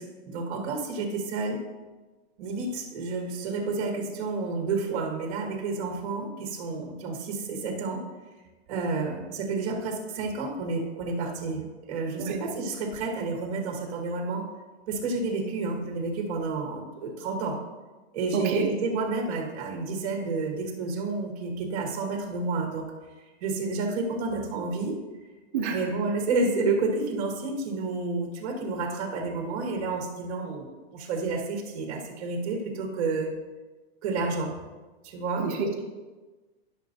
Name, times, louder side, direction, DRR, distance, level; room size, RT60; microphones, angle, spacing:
voice 1, 0.0-1.6 2.4-8.0 8.7-14.5 14.9-17.6 18.1-22.9 23.4-25.0 25.7-33.3 34.0-34.5 35.0-35.5, right 3 dB, 35° right, 1 dB, 1.4 m, -30 dB
voice 2, 18.3-18.7 25.5-25.8 35.4-35.8, right 4 dB, 15° right, -2 dB, 0.4 m, -28 dB
11.5 x 6.2 x 2.7 m, 1.2 s
supercardioid pair, 175°, 32 cm